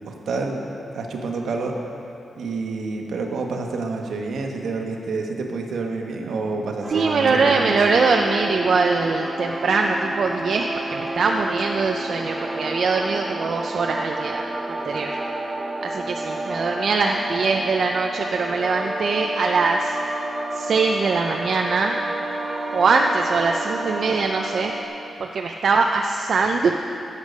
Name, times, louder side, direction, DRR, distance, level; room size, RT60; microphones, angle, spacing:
voice 1, 0.1-0.6 0.9-1.8 2.4-7.8, right 3 dB, 75° right, 2 dB, 1.2 m, -28 dB
sound 1, 6.8-24.9, right 1 dB, 20° right, 0.8 m, -30 dB
voice 2, 6.9-15.1 15.8-20.0 20.5-21.9 22.7-24.7 25.2-26.7, right 4 dB, 55° right, 2 dB, 0.5 m, -22 dB
13.0 x 8.2 x 5.3 m, 2.9 s
wide cardioid pair, 160°, 0 cm